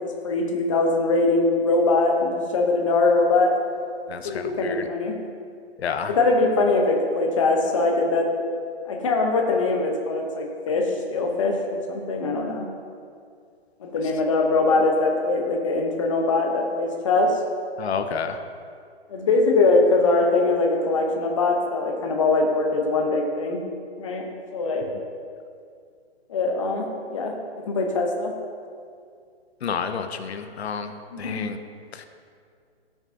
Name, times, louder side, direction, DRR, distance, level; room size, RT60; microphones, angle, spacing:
voice 1, 0.0-3.5 4.2-5.2 6.1-8.3 8.8-12.7 13.8-17.3 19.1-23.6 24.0-24.2 24.5-24.9 26.3-28.3 31.1-31.4, left 3 dB, 30° left, 1 dB, 0.8 m, -22 dB
voice 2, 4.1-4.9 5.8-6.2 17.8-18.4 29.6-31.6 31.9-32.1, left 6 dB, 80° left, 8 dB, 0.7 m, -30 dB
13.0 x 5.9 x 2.7 m, 2.3 s
hypercardioid pair, 175°, 32 cm